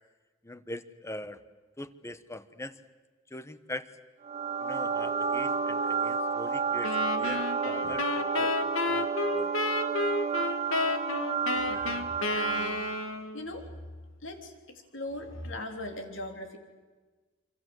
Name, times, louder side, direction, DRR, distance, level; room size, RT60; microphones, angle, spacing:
voice 1, 0.4-1.4 1.8-2.7 3.3-3.9 4.6-9.5, left 1 dB, 15° left, 13 dB, 1.1 m, -42 dB
sound 1, 4.2-13.1, right 5 dB, 30° right, 1.5 m, -31 dB
sound 2, 6.8-13.4, left 3 dB, 90° left, 1.9 m, -31 dB
voice 2, 11.5-12.8 13.3-13.9 14.2-16.6, left 1 dB, 65° left, 5 dB, 3.6 m, -40 dB
26.5 x 25.5 x 7.9 m, 1.3 s
head